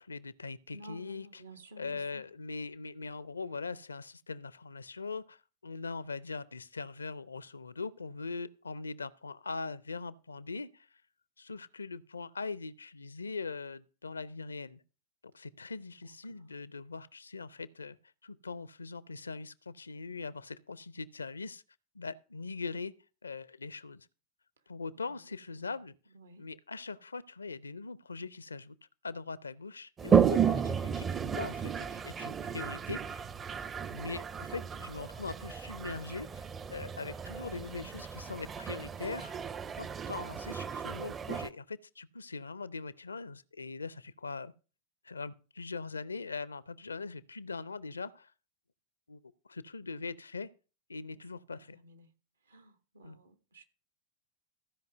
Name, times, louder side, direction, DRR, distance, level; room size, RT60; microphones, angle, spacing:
voice 1, 0.0-1.4 1.8-10.9 11.4-14.8 15.3-18.0 18.2-21.6 21.9-22.9 23.2-24.1 24.7-25.9 26.4-28.8 29.0-33.3 33.9-39.3 39.8-44.5 45.0-48.3 49.1-49.2 49.5-50.5 50.9-51.8 53.0-53.2, left 4 dB, 75° left, 0.5 m, -41 dB
voice 2, 0.7-2.2 16.0-16.5 24.9-25.2 26.1-26.5 51.1-51.2 51.5-52.1 52.5-53.6, right 1 dB, 75° right, 1.3 m, -53 dB
Toilet flush, 30.0-41.5, right 7 dB, 20° right, 0.6 m, -33 dB
14.5 x 5.3 x 6.5 m
figure-of-eight pair, 90°, 0 cm